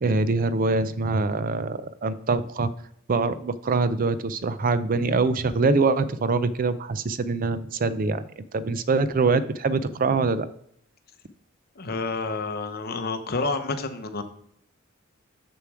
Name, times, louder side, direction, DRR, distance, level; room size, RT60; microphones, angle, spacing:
voice 1, 0.0-2.7 3.1-10.5, right 3 dB, 45° right, 14 dB, 0.5 m, -24 dB
voice 2, 11.8-14.2, left 3 dB, 50° left, 8 dB, 0.8 m, -29 dB
6.8 x 6.1 x 4.8 m, 0.70 s
head